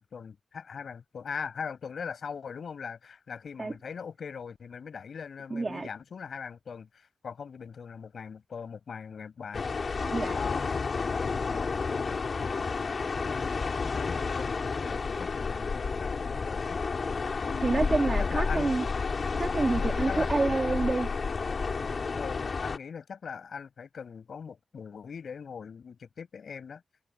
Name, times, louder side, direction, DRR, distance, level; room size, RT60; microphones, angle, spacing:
voice 1, 0.0-9.7 10.3-12.6 13.3-16.8 17.4-18.7 19.7-20.3 22.1-26.8, left 6 dB, 75° left, 7.3 m, -41 dB
voice 2, 5.5-5.9 10.0-10.4 17.6-18.9 19.4-21.1, right 3 dB, 40° right, 2.3 m, -28 dB
sound 1, 9.5-22.8, left 4 dB, 55° left, 7.1 m, -31 dB
cardioid pair, 75°, 0 cm